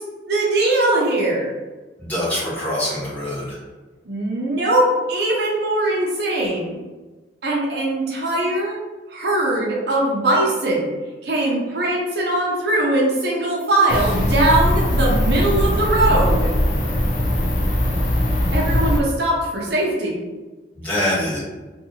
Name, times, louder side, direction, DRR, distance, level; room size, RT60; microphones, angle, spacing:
voice 1, 0.3-1.5 4.1-6.8 7.4-8.8 9.1-10.9 11.2-16.5 18.5-20.2, right 1 dB, 65° right, -3 dB, 0.6 m, -20 dB
voice 2, 2.0-3.6 20.7-21.4, left 1 dB, 10° left, -11 dB, 1.4 m, -24 dB
sound 1, 13.9-19.0, left 1 dB, 45° left, 0.5 m, -20 dB
2.6 x 2.6 x 2.8 m, 1.2 s
head